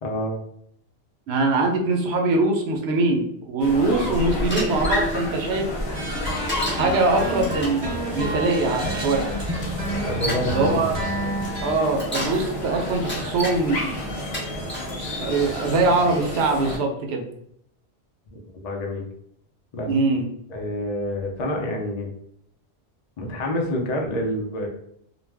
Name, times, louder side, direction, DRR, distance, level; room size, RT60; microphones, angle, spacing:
voice 1, 0.0-0.4 10.0-10.9 18.3-19.1 19.7-20.1 20.5-22.1 23.2-24.7, left 1 dB, 50° left, 1 dB, 0.6 m, -28 dB
voice 2, 1.3-5.7 6.8-9.3 10.5-10.9 11.6-14.0 15.2-17.2 19.9-20.3, right 3 dB, 80° right, 2 dB, 0.8 m, -22 dB
sound 1, 3.6-16.8, left 1 dB, 85° left, 1.0 m, -30 dB
Bicycle, 4.5-5.1 6.5-6.9 7.4-7.8 8.9-9.0 9.8-10.5 11.8-12.4 12.9-13.6 14.2-14.9 15.5-15.9, equal, 10° left, 0.7 m, -31 dB
sound 2, 5.9-11.7, right 1 dB, 50° right, 1.0 m, -30 dB
2.4 x 2.0 x 3.3 m, 0.71 s
omnidirectional pair, 1.1 m